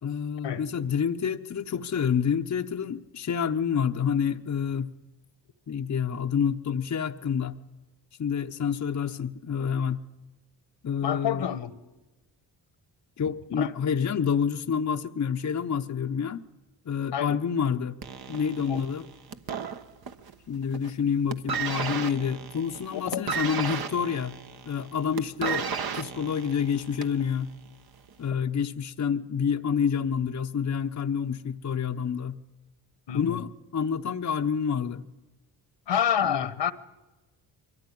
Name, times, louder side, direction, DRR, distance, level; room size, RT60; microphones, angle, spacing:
voice 1, 0.0-4.9 5.7-7.6 8.2-10.0 10.8-11.5 13.2-16.4 16.9-18.0 18.3-19.1 20.5-24.3 24.7-27.5 28.2-32.4 33.1-35.0 36.2-36.5, left 7 dB, 40° left, 0.9 m, -28 dB
voice 2, 11.0-11.7 13.6-13.7 17.1-17.4 18.7-18.8 22.9-23.3 33.1-33.4 35.9-36.7, left 9 dB, 65° left, 1.3 m, -28 dB
sound 1, 18.0-20.3 20.6-21.0 21.3-27.3 28.1-28.2, right 6 dB, 55° right, 1.3 m, -33 dB
23.0 x 14.5 x 10.0 m
supercardioid pair, 60°, 45 cm